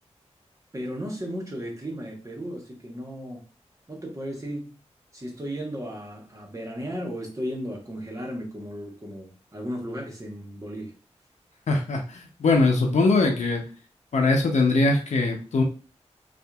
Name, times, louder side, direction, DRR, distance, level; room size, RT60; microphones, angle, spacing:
voice 1, 0.7-3.4 3.9-4.7 5.1-10.9, equal, 25° right, 1.1 m, -35 dB
voice 2, 11.7-13.6 14.1-15.6, left 3 dB, 85° left, 0.6 m, -21 dB
2.7 x 2.5 x 2.3 m
cardioid pair, 60°, 12 cm